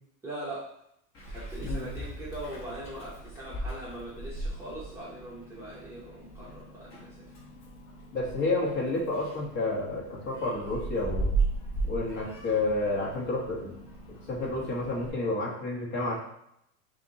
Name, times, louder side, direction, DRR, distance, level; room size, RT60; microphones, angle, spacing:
voice 1, 0.2-0.7 1.2-7.3, right 1 dB, 5° right, -9 dB, 0.8 m, -41 dB
Meow, 1.1-15.1, right 3 dB, 25° left, 1.0 m, -37 dB
voice 2, 8.1-11.3 11.8-13.7 14.3-16.2, left 2 dB, 45° left, -3 dB, 1.5 m, -30 dB
5.9 x 2.8 x 2.9 m, 0.78 s
supercardioid pair, 145°, 47 cm